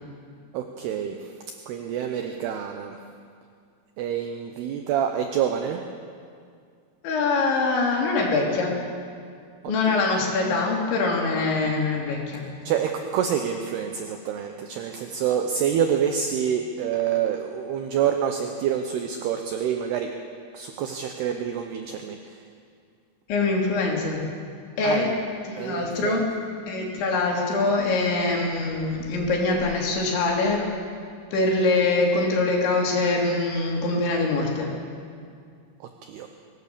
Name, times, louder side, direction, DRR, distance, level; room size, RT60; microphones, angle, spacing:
voice 1, 0.5-1.3 1.7-3.0 4.0-5.8 9.6-10.0 12.6-20.1 20.5-22.2 24.8-25.2 25.6-26.2 36.0-36.3, right 8 dB, 75° right, 5 dB, 2.6 m, -27 dB
voice 2, 7.0-8.8 9.7-12.4 23.3-24.2 24.8-25.1 25.5-26.3 26.7-30.6 31.3-34.7, left 3 dB, 70° left, -1 dB, 5.3 m, -23 dB
24.0 x 18.0 x 6.9 m, 2.2 s
omnidirectional pair, 5.5 m